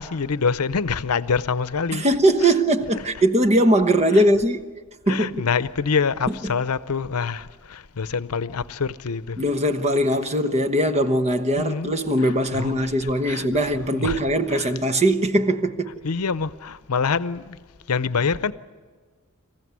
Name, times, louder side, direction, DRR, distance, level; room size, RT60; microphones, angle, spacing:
voice 1, 0.0-2.1 2.4-2.5 2.9-3.0 4.1-4.2 5.1-9.4 11.6-13.5 13.9-14.2 14.5-14.7 16.0-17.6 17.9-18.5, left 5 dB, 80° left, 0.7 m, -26 dB
voice 2, 1.9-4.6 5.1-5.4 6.3-6.4 9.4-15.9, right 1 dB, 30° right, 1.1 m, -20 dB
26.0 x 15.0 x 9.6 m
head